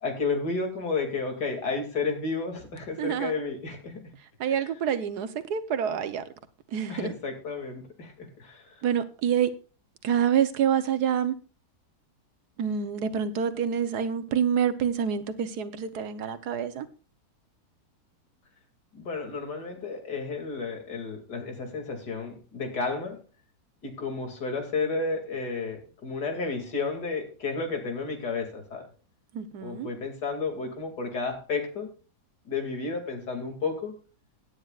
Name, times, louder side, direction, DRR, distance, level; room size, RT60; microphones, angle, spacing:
voice 1, 0.0-4.0 4.5-4.7 6.9-8.9 18.9-23.2 23.8-28.8 29.6-31.9 32.5-34.0, left 4 dB, 80° left, 3.1 m, -32 dB
voice 2, 3.0-3.3 4.4-6.2 6.7-7.1 8.8-9.5 10.0-11.3 12.6-16.9 29.3-29.9, right 8 dB, 75° right, 1.5 m, -27 dB
17.0 x 9.7 x 2.4 m
omnidirectional pair, 1.7 m